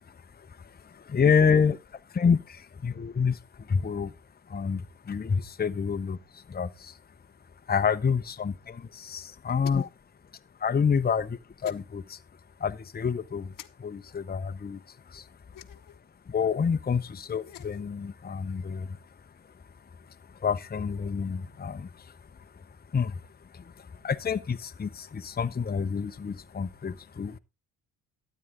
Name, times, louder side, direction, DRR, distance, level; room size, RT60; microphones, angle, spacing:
voice 1, 0.1-4.1 4.5-7.0 7.7-9.9 10.6-12.2 12.6-13.5 13.8-15.3 16.3-19.0 20.4-22.2 22.5-22.6 22.9-23.2 23.5-27.4, left 6 dB, 25° left, 0.8 m, -28 dB
sound 1, 9.6-10.0 11.6-11.8 13.5-13.7 15.5-16.0 17.3-17.9, left 11 dB, 50° left, 1.0 m, -46 dB
12.5 x 9.2 x 3.8 m
supercardioid pair, 60°, 41 cm